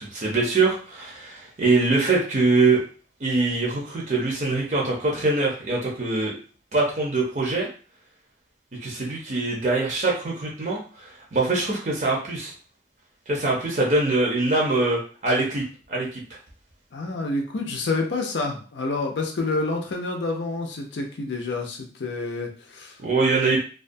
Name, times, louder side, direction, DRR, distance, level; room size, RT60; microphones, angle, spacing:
voice 1, 0.0-2.8 3.2-6.3 6.7-7.7 8.8-12.5 13.3-16.2 23.0-23.6, right 3 dB, 45° right, -2 dB, 0.6 m, -23 dB
voice 2, 16.9-22.9, left 3 dB, 80° left, 2 dB, 0.5 m, -28 dB
2.4 x 2.2 x 2.6 m, 0.39 s
head